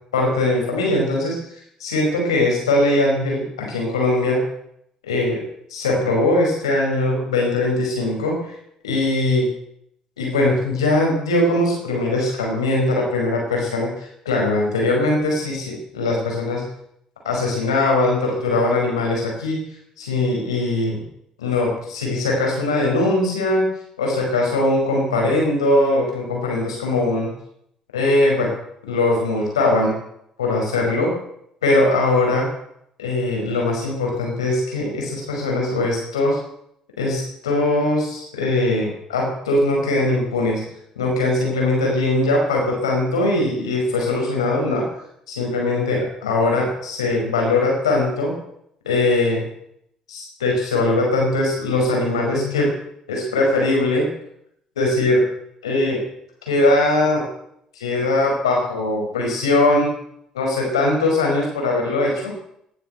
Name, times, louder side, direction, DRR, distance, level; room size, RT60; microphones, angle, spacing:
voice 1, 0.1-1.4 1.8-4.4 5.1-5.4 5.7-8.6 8.8-9.5 10.2-16.7 17.3-19.6 20.0-21.0 21.4-23.7 24.0-27.3 27.9-28.5 28.8-30.0 30.4-31.2 31.6-32.5 33.0-36.4 37.0-40.6 41.0-44.9 45.3-48.4 48.9-49.5 50.1-52.7 53.1-54.1 54.8-55.2 55.6-56.0 56.5-57.2 57.8-59.9 60.3-62.3, left 2 dB, 90° left, -1 dB, 5.2 m, -20 dB
18.5 x 9.3 x 7.9 m, 0.74 s
hypercardioid pair, 50°, 3 cm